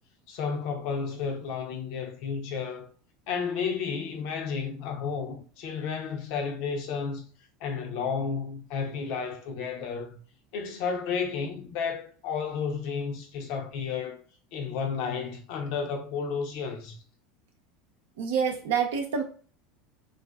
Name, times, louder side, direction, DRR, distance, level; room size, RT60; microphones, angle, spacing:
voice 1, 0.3-2.9 3.3-7.2 7.6-10.2 10.5-14.2 14.5-17.0, left 6 dB, 65° left, 0.6 m, -32 dB
voice 2, 18.2-19.2, right 6 dB, 80° right, 0.6 m, -27 dB
2.4 x 2.4 x 2.2 m
hypercardioid pair, 90°, 0 cm